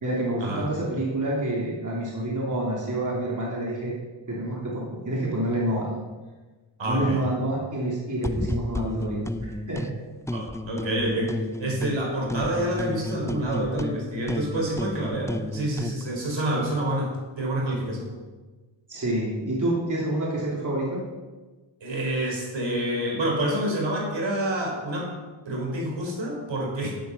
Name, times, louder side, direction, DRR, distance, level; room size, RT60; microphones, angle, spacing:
voice 1, 0.0-3.9 4.3-5.9 6.9-9.9 18.9-21.0, right 1 dB, 40° right, -4 dB, 3.5 m, -28 dB
voice 2, 6.8-7.2 10.3-18.1 21.8-25.1 25.4-26.9, right 1 dB, 65° right, 0 dB, 4.8 m, -28 dB
sound 1, 8.2-9.9 10.3-12.0 12.3-16.0, left 1 dB, 5° left, 0.7 m, -32 dB
11.5 x 10.5 x 5.7 m, 1.3 s
cardioid pair, 75°, 47 cm